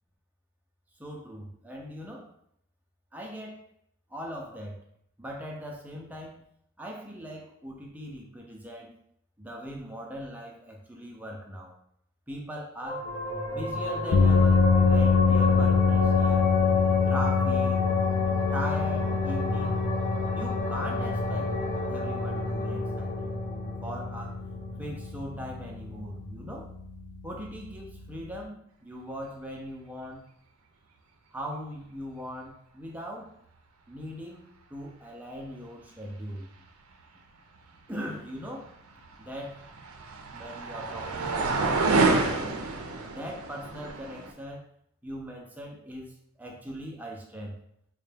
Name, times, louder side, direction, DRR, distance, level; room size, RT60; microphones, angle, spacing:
voice 1, 1.0-2.3 3.1-3.6 4.1-4.8 5.2-6.4 6.8-8.9 9.4-11.7 12.3-13.1 13.5-16.5 17.1-17.8 18.5-19.8 20.3-21.6 21.9-23.3 23.8-24.4 24.8-26.7 27.2-30.3 31.3-33.3 33.9-36.5 37.9-38.7 39.2-39.6 40.3-41.7 42.1-42.7 43.1-44.6 45.0-47.6, equal, 10° right, -1 dB, 0.5 m, -40 dB
sound 1, 12.8-25.7, left 2 dB, 40° left, 0.6 m, -30 dB
sound 2, 14.1-28.4, left 5 dB, 80° left, 0.4 m, -26 dB
sound 3, 39.0-44.3, right 3 dB, 85° right, 0.5 m, -28 dB
3.9 x 2.2 x 3.3 m, 0.71 s
head